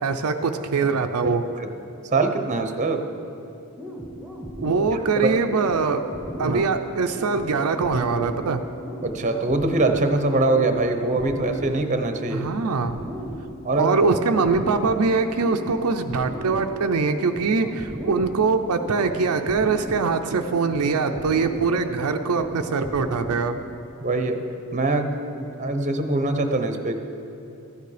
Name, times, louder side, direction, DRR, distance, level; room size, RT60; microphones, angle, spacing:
voice 1, 0.0-1.4 4.6-6.0 6.4-8.6 12.3-13.0 13.8-23.5, right 4 dB, 80° right, 6 dB, 0.5 m, -23 dB
voice 2, 1.2-1.7 2.1-3.0 4.9-5.3 6.4-6.6 9.0-12.5 13.6-14.0 24.0-24.4 24.7-26.9, right 2 dB, 35° right, 6 dB, 0.8 m, -23 dB
sound 1, 3.8-23.8, equal, ahead, 1.2 m, -36 dB
13.5 x 9.3 x 5.0 m, 2.8 s
head